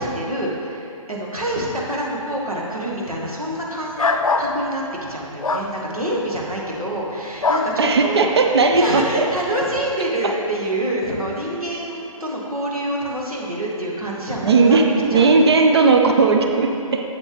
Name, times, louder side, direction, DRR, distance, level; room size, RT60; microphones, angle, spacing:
voice 1, 0.0-4.1 4.4-4.8 5.1-8.3 8.7-14.8 15.1-15.3, right 1 dB, 85° right, -3 dB, 1.8 m, -26 dB
sound 1, 4.0-4.5 5.4-5.7 7.4-7.7, left 3 dB, 70° left, 0.6 m, -20 dB
voice 2, 7.8-9.2 14.4-17.0, right 4 dB, 45° right, 4 dB, 0.6 m, -16 dB
7.9 x 7.6 x 3.4 m, 2.7 s
figure-of-eight pair, 140°, 18 cm